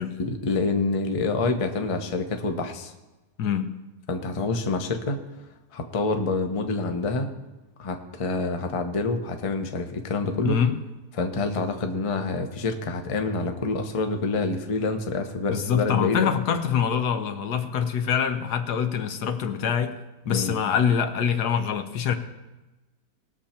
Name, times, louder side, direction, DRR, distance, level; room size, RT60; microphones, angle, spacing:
voice 1, 0.2-2.9 4.1-5.2 5.7-7.3 7.8-10.6 11.1-16.3 20.3-20.6, left 3 dB, 30° left, 5 dB, 0.7 m, -27 dB
voice 2, 3.4-3.7 10.4-10.8 15.5-19.9 20.3-22.1, left 7 dB, 75° left, 8 dB, 1.4 m, -25 dB
19.5 x 6.9 x 4.4 m, 1.1 s
omnidirectional pair, 1.8 m